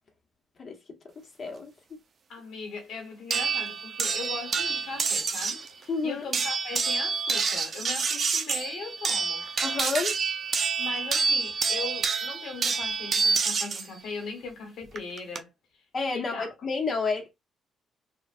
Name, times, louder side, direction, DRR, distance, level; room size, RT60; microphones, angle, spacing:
voice 1, 1.4-1.7 5.9-6.2 9.6-10.2 15.9-17.3, left 4 dB, 45° left, 1.1 m, -29 dB
voice 2, 2.3-9.4 10.8-15.5 16.1-16.5, left 4 dB, 70° left, 1.2 m, -39 dB
sound 1, 3.3-5.7 6.3-13.9 15.0-15.4, right 5 dB, 45° right, 0.5 m, -28 dB
3.2 x 2.4 x 2.4 m
cardioid pair, 90°, 0 cm